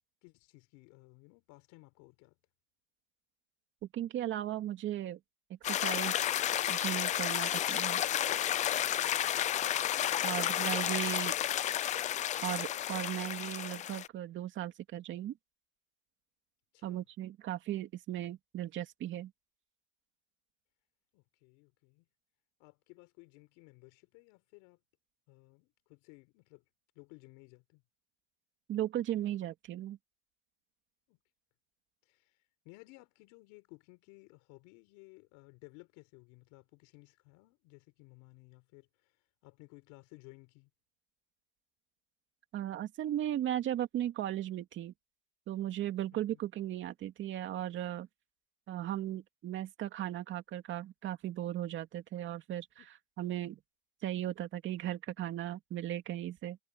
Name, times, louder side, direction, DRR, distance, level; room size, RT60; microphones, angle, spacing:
voice 1, 0.2-2.4 10.3-11.1 16.7-17.0 21.1-22.1 22.6-24.8 25.3-26.6 26.9-27.8 31.1-31.2 32.1-32.4 32.6-39.1 39.4-40.7 46.1-46.4 52.8-52.9, left 26 dB, 50° left, 4.5 m, -57 dB
voice 2, 3.9-5.2 5.7-6.2 6.7-8.0 10.2-11.3 12.4-15.4 16.8-19.3 28.7-30.0 42.5-44.9 45.5-48.1 48.7-52.7 53.2-53.6 54.0-56.6, right 12 dB, 30° right, 2.5 m, -36 dB
sound 1, 5.6-14.1, left 11 dB, 20° left, 0.6 m, -32 dB
supercardioid pair, 150°, 39 cm